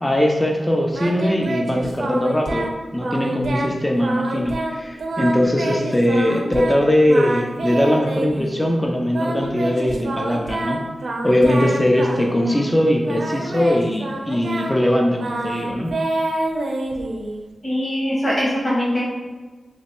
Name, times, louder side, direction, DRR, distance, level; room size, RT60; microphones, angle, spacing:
voice 1, 0.0-10.8 11.2-15.9, left 1 dB, 10° left, 1 dB, 0.3 m, -20 dB
Singing, 0.9-2.7 3.0-3.7 4.0-6.8 7.1-8.5 9.1-12.7 13.0-17.5, right 2 dB, 75° right, 0.5 m, -27 dB
voice 2, 17.6-19.0, equal, 25° left, -6 dB, 1.4 m, -22 dB
3.1 x 3.1 x 2.9 m, 1.3 s
wide cardioid pair, 130°, 0 cm